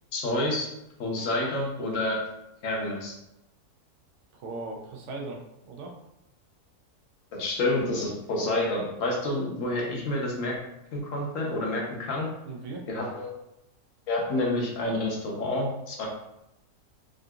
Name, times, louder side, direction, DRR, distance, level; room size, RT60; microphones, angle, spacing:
voice 1, 0.1-0.7 1.0-2.2 2.6-3.1 7.3-10.6 10.9-12.3 12.9-13.3 14.1-16.1, left 1 dB, 60° left, -2 dB, 1.1 m, -28 dB
voice 2, 4.3-5.9 12.5-12.9, right 3 dB, 60° right, 0 dB, 0.8 m, -38 dB
3.6 x 2.5 x 2.3 m, 0.87 s
omnidirectional pair, 1.6 m